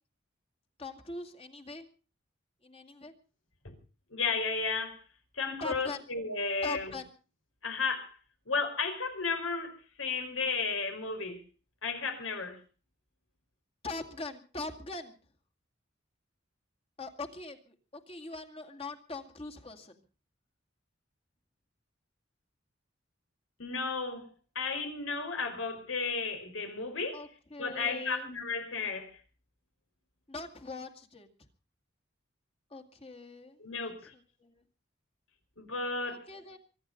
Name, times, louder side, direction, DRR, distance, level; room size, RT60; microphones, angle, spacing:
voice 1, 0.8-1.9 2.6-3.1 5.6-6.0 6.6-7.1 13.8-15.2 17.0-20.0 27.1-28.3 30.3-31.3 32.7-33.9 34.4-34.6 36.0-36.6, left 3 dB, 30° left, 2.1 m, -42 dB
voice 2, 4.1-5.0 5.3-7.0 7.6-8.2 8.5-11.4 11.8-12.6 23.6-24.3 24.5-27.3 27.6-29.2 33.6-34.1 35.6-36.3, left 4 dB, 85° left, 4.8 m, -33 dB
24.0 x 11.0 x 5.2 m
head